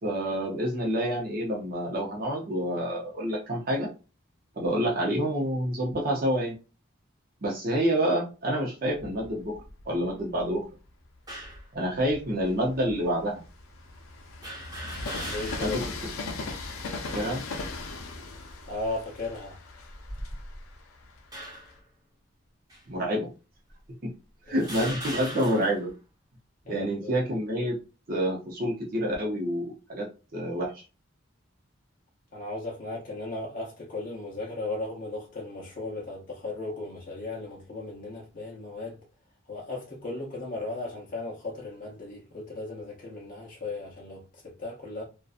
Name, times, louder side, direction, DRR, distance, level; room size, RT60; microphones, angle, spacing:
voice 1, 0.0-3.9 4.6-6.5 7.4-10.7 11.7-13.4 15.6-15.8 17.1-17.4 22.9-23.3 24.5-25.9 26.7-27.8 28.1-30.8, equal, 45° right, 0.6 m, -28 dB
Train, 8.9-10.6 11.2-21.8, left 3 dB, 85° left, 0.5 m, -39 dB
sound 1, 11.3-11.7 12.5-12.6 14.4-15.9 16.3-16.4 17.5-18.0 18.7-18.9 19.9-20.7 21.3-21.8 22.7-22.8 23.7-23.8 24.5-25.9, right 1 dB, 20° right, 0.9 m, -39 dB
voice 2, 15.2-15.8 18.7-19.6 24.5-24.9 26.7-27.3 32.3-39.0 39.5-45.0, left 2 dB, 40° left, 0.6 m, -36 dB
2.5 x 2.2 x 2.4 m
head